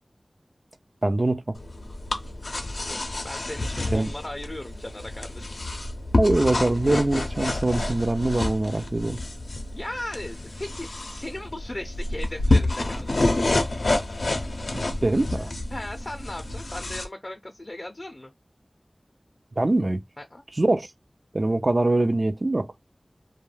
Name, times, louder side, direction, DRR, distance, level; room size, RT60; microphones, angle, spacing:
voice 1, 1.0-1.6 3.9-4.1 6.2-9.2 14.7-15.5 19.6-20.0 20.6-20.9 21.3-22.7, right 2 dB, 50° right, 0.4 m, -23 dB
sound 1, 1.6-17.1, left 2 dB, 90° left, 0.5 m, -28 dB
voice 2, 2.9-5.5 9.7-13.3 15.4-18.3 20.2-20.4, left 1 dB, 40° left, 0.5 m, -37 dB
2.2 x 2.2 x 3.1 m
wide cardioid pair, 45°, 0 cm